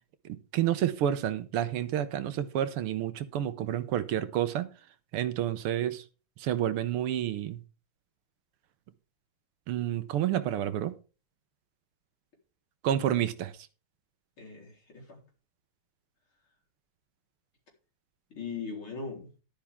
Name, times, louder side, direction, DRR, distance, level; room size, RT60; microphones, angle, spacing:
voice 1, 0.3-4.7 5.1-6.0 6.4-7.6 9.7-10.9 12.8-13.5, right 11 dB, 80° right, 1.8 m, -29 dB
voice 2, 14.4-15.2 18.3-19.3, left 5 dB, 70° left, 4.8 m, -40 dB
11.5 x 10.5 x 3.6 m
omnidirectional pair, 2.4 m